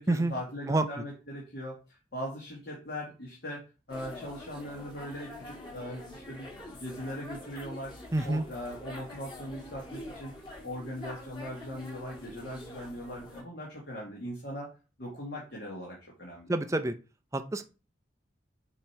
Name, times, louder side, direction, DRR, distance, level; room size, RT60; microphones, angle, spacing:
voice 1, 0.0-3.6 3.9-7.9 8.2-10.3 10.6-14.7 15.0-16.5, equal, 55° left, -3 dB, 1.7 m, -40 dB
sound 1, 3.9-13.4, left 1 dB, 25° left, 1.8 m, -46 dB
voice 2, 8.1-8.4 16.5-16.9 17.3-17.6, right 2 dB, 15° right, 8 dB, 0.4 m, -27 dB
7.3 x 2.9 x 4.5 m, 0.33 s
head